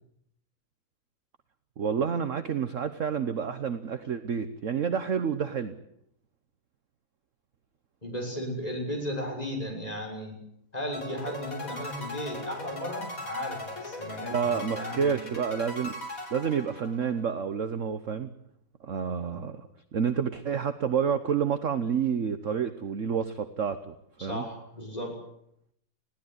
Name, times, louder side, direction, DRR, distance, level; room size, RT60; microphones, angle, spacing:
voice 1, 1.8-5.7 14.3-15.9 16.3-18.3 18.8-19.7 19.9-23.9 24.2-24.4, right 7 dB, 45° right, 10 dB, 1.1 m, -29 dB
voice 2, 8.0-10.3 10.7-15.2 24.2-25.1, equal, 15° left, 0 dB, 6.7 m, -35 dB
sound 1, 10.9-17.2, left 1 dB, 40° left, 4.7 m, -39 dB
21.0 x 16.5 x 9.7 m, 0.75 s
omnidirectional pair, 2.3 m